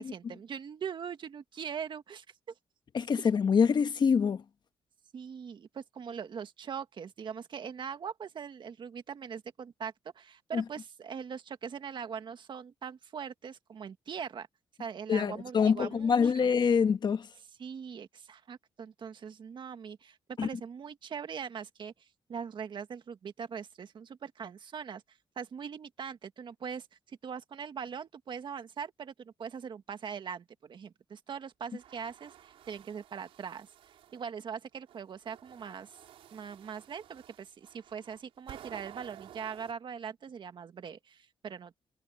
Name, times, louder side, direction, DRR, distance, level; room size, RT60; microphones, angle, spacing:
voice 1, 0.0-2.5 3.2-3.3 5.1-14.5 14.8-16.5 17.6-33.7 34.1-36.0 36.3-41.7, right 7 dB, 55° right, 1.8 m, -41 dB
voice 2, 2.9-4.4 10.5-10.6 15.1-17.3 20.4-20.5, left 6 dB, 50° left, 1.4 m, -25 dB
sound 1, 31.6-34.2 34.9-39.7, right 11 dB, 85° right, 4.4 m, -53 dB
cardioid pair, 85°, 9 cm